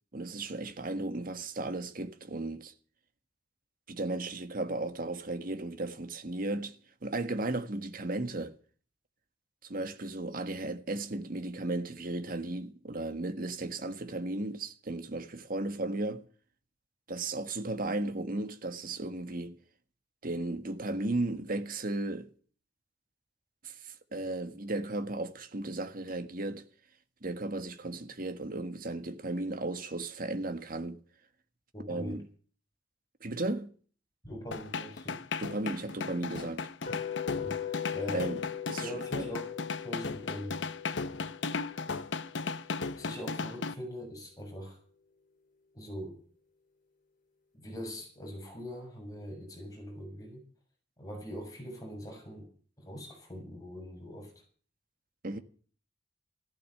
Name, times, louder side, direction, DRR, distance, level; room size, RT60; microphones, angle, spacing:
voice 1, 0.1-2.7 3.9-8.5 9.6-16.3 17.1-19.6 20.2-22.3 23.6-26.6 27.2-31.0 31.9-32.3 33.2-33.7 35.4-36.6 38.1-38.4 38.7-39.3 55.2-55.4, right 2 dB, 50° right, 1.5 m, -35 dB
voice 2, 31.7-32.2 34.2-35.2 37.4-38.3 38.8-39.5 39.8-40.6 43.0-44.8 45.7-46.2 47.5-50.4 51.0-52.5 52.8-54.4, equal, 20° left, 7.2 m, -42 dB
sound 1, 34.5-43.7, left 4 dB, 75° left, 0.9 m, -36 dB
sound 2, 36.9-42.9, left 9 dB, 45° left, 2.9 m, -40 dB
14.5 x 12.0 x 6.7 m
head